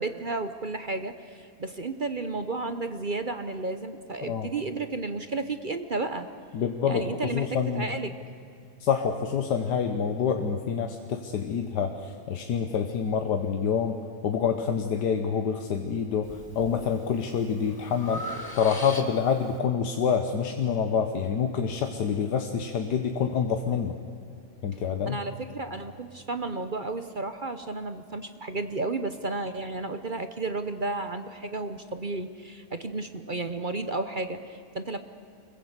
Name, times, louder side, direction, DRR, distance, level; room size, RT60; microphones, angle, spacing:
voice 1, 0.0-6.3 6.9-7.5 7.7-8.2 25.1-35.0, right 3 dB, 40° right, 9 dB, 0.8 m, -32 dB
voice 2, 6.5-7.9 8.8-14.0 14.2-18.3 18.5-23.9 24.6-25.2, left 7 dB, 75° left, 5 dB, 1.7 m, -27 dB
Breathing, 16.2-16.7 17.2-19.4, equal, 15° left, 1.7 m, -39 dB
25.0 x 21.5 x 8.1 m, 2.4 s
omnidirectional pair, 1.8 m